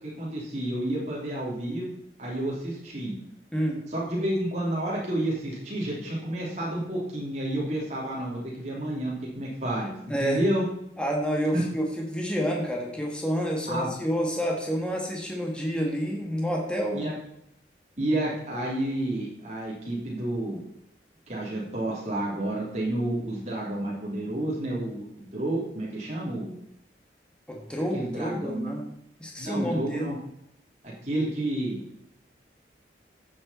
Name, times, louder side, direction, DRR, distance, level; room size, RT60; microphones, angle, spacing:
voice 1, 0.0-1.9 2.2-3.2 3.9-10.6 11.5-11.6 13.7-13.9 16.9-17.1 18.0-20.6 21.3-26.5 27.9-28.7 29.4-30.2 31.0-31.8, right 1 dB, 40° right, -5 dB, 3.2 m, -30 dB
voice 2, 3.5-3.8 10.1-10.4 11.0-17.1 27.5-28.9 29.2-30.1, equal, 5° left, 0 dB, 1.5 m, -29 dB
14.5 x 6.6 x 4.3 m, 0.77 s
head